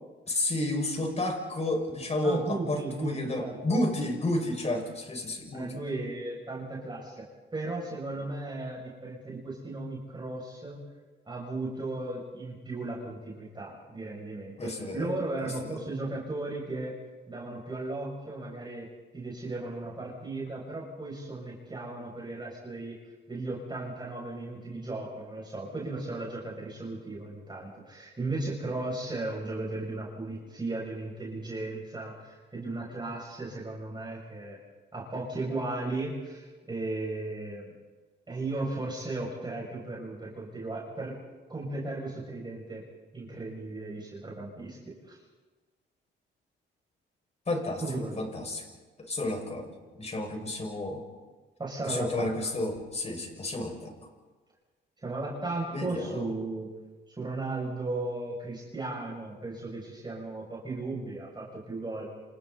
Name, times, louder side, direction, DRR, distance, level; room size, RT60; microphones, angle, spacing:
voice 1, 0.3-5.8 14.6-15.1 15.4-15.8 47.5-47.8 48.2-48.6 49.0-51.0 51.8-53.9 55.7-56.3, left 2 dB, 35° left, 3 dB, 6.2 m, -31 dB
voice 2, 2.2-3.8 5.5-7.3 7.5-10.8 11.3-16.9 17.3-18.9 19.1-23.0 23.3-34.6 34.9-37.7 38.3-41.2 41.5-42.8 43.1-44.8 45.1-45.2 47.8-48.3 51.6-52.5 55.0-56.7 57.1-62.0, right 2 dB, 20° right, -4 dB, 7.2 m, -36 dB
29.0 x 28.0 x 4.3 m, 1.3 s
cardioid pair, 90°, 20 cm